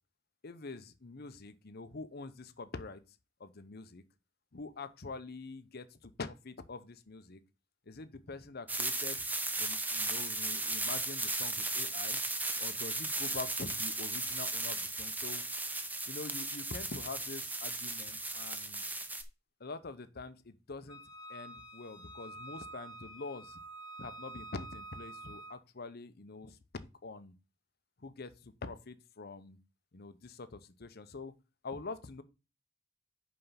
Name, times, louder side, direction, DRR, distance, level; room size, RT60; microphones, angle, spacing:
voice 1, 0.4-3.0 3.4-4.0 4.5-7.4 7.9-9.2 9.6-12.2 12.6-15.4 16.1-18.8 19.6-21.0 21.3-23.6 24.0-27.3 28.0-29.6 29.9-31.3 31.6-32.2, left 3 dB, 55° left, 0.8 m, -45 dB
sound 1, 8.7-19.2, right 2 dB, 10° right, 0.7 m, -36 dB
Wind instrument woodwind instrument, 20.9-25.6, right 2 dB, 20° left, 1.2 m, -48 dB
5.6 x 5.4 x 5.7 m
head